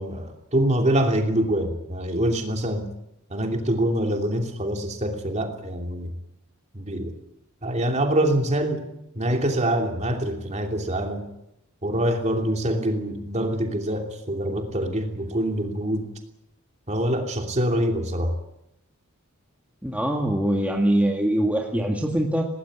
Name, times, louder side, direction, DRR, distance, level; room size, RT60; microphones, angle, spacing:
voice 1, 0.0-2.9 3.3-6.1 6.7-7.1 7.6-8.9 9.1-11.3 11.8-16.1 16.9-18.3, right 1 dB, 30° right, 4 dB, 2.9 m, -25 dB
voice 2, 19.8-22.5, right 1 dB, 5° right, 1 dB, 2.0 m, -23 dB
18.5 x 18.5 x 8.8 m, 0.84 s
head